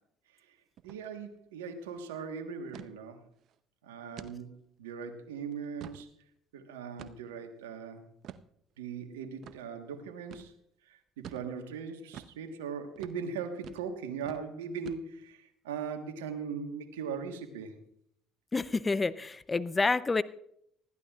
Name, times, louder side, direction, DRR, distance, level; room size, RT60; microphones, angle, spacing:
sound 1, 0.8-1.0 1.3-1.4 1.8-2.0 2.7-2.9 3.4-3.5 4.2-4.4 4.9-5.0 5.5-6.1 7.0-7.4 8.2-8.5 9.4-9.6 10.3-10.5 11.2-11.5 12.1-12.4 13.0-13.2 13.6-13.9 14.2-14.4 14.9-15.3, right 10 dB, 60° right, 0.7 m, -47 dB
voice 1, 0.8-3.2 3.8-6.1 6.5-8.1 8.8-10.5 10.9-17.8, right 6 dB, 85° right, 6 dB, 1.3 m, -39 dB
voice 2, 18.5-20.2, left 3 dB, 25° left, 17 dB, 0.6 m, -28 dB
19.5 x 14.5 x 2.4 m, 0.72 s
hypercardioid pair, 60°, 0 cm